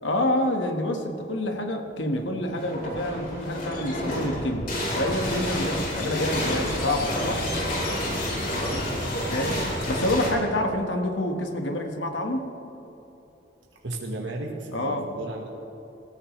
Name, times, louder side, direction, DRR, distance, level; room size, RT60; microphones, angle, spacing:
voice 1, 0.0-7.4 9.3-9.6 9.9-12.5 14.7-15.1, left 1 dB, 90° left, 3 dB, 1.6 m, -27 dB
sound 1, 2.5-10.3, left 1 dB, 50° left, 4.2 m, -29 dB
voice 2, 9.0-9.7 13.8-15.5, right 2 dB, 85° right, -1 dB, 1.5 m, -35 dB
25.5 x 14.0 x 3.3 m, 3.0 s
head